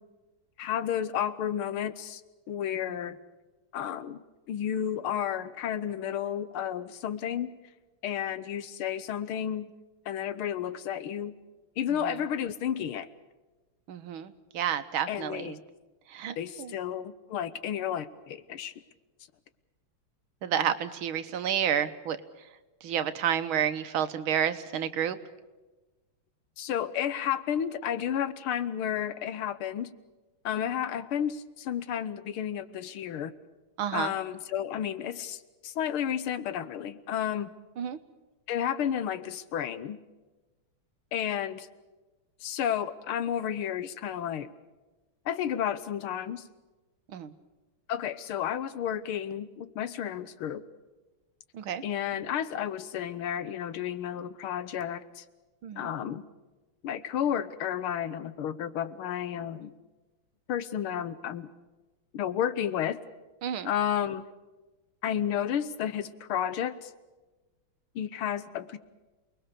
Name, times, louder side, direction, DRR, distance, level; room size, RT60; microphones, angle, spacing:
voice 1, 0.6-2.2 2.5-3.2 3.7-4.2 4.5-7.5 8.0-9.7 10.1-11.3 11.8-13.1 15.1-15.6 16.4-18.7 26.6-29.9 30.5-33.3 33.9-37.5 38.5-40.0 41.1-41.7 42.4-44.5 45.3-46.4 47.9-50.6 51.8-55.2 55.8-56.2 56.8-59.7 60.5-61.5 62.1-63.0 63.7-64.2 65.0-66.9 68.0-68.8, left 9 dB, 90° left, 14 dB, 1.9 m, -32 dB
voice 2, 13.9-15.6 16.1-16.7 20.4-22.2 22.8-25.2 33.8-34.1 37.8-38.0 47.1-47.3 51.5-51.8 55.6-55.9 63.4-63.7, right 9 dB, 80° right, 10 dB, 1.9 m, -30 dB
28.5 x 20.5 x 6.8 m, 1.2 s
omnidirectional pair, 2.3 m